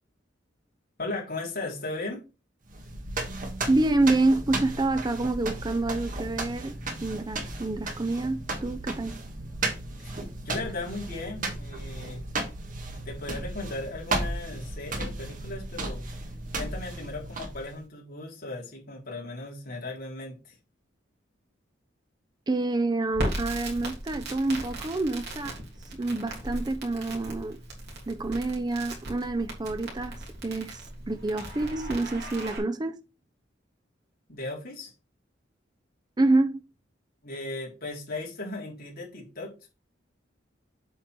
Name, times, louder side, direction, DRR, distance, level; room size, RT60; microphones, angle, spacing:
voice 1, 1.0-2.2 10.0-12.2 12.7-16.0 16.5-20.6 34.3-34.9 37.2-39.8, left 2 dB, 55° left, 3.9 m, -37 dB
sound 1, 2.7-17.8, right 2 dB, 45° right, 1.6 m, -35 dB
voice 2, 3.7-6.7 7.0-9.2 22.5-25.6 25.9-27.6 28.1-33.0 36.2-36.6, right 2 dB, 20° right, 0.5 m, -27 dB
Crackle, 23.1-32.6, right 1 dB, 60° right, 3.1 m, -37 dB
8.1 x 4.5 x 4.6 m
head